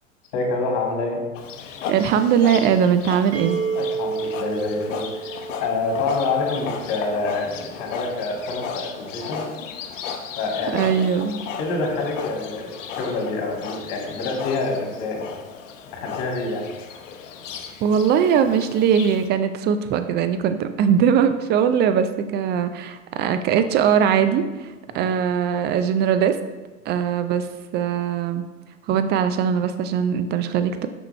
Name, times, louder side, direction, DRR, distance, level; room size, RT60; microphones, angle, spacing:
voice 1, 0.3-1.2 3.8-9.4 10.4-10.8 11.6-15.4 15.9-16.6 24.9-25.0, left 3 dB, 45° left, 0 dB, 2.1 m, -27 dB
Livestock farm animals working animals, 1.3-19.3, left 6 dB, 70° left, 0.8 m, -36 dB
voice 2, 1.9-3.6 10.7-11.4 17.8-26.4 26.9-27.5 27.7-28.4 28.9-30.9, right 8 dB, 25° right, 10 dB, 0.4 m, -20 dB
sound 1, 3.3-7.0, right 5 dB, 60° right, 1.3 m, -30 dB
6.2 x 5.7 x 3.2 m, 1.2 s
hypercardioid pair, 90°, 39 cm